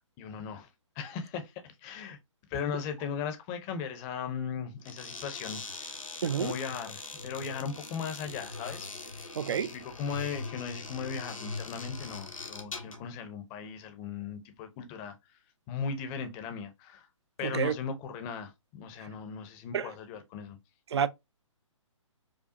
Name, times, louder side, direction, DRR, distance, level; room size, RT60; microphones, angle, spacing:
voice 1, 0.2-0.7 1.0-2.2 2.5-15.1 15.7-17.1 17.4-20.6, left 6 dB, 20° left, 0.6 m, -38 dB
sound 1, 4.8-13.1, left 3 dB, 90° left, 1.0 m, -41 dB
voice 2, 6.2-6.5 9.4-9.7 17.4-17.7 19.7-19.9 20.9-21.1, right 8 dB, 55° right, 0.4 m, -29 dB
4.9 x 2.3 x 2.6 m
figure-of-eight pair, 135°, 17 cm